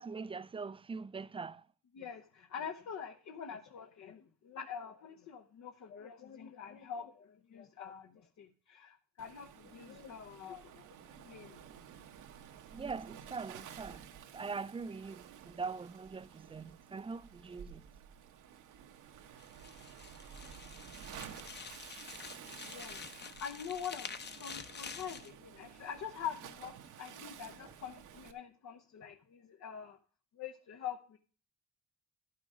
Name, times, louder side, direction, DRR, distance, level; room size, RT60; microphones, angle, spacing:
voice 1, 0.0-1.6 12.7-14.0 14.3-17.9, right 4 dB, 20° right, 0.4 m, -42 dB
voice 2, 1.9-11.6 22.6-30.0 30.3-31.2, left 8 dB, 65° left, 0.9 m, -45 dB
Waves surf, 9.2-28.3, right 8 dB, 80° right, 1.1 m, -52 dB
sound 1, 19.4-25.3, left 5 dB, 35° left, 0.8 m, -48 dB
11.0 x 6.0 x 4.9 m
cardioid pair, 90°, 30 cm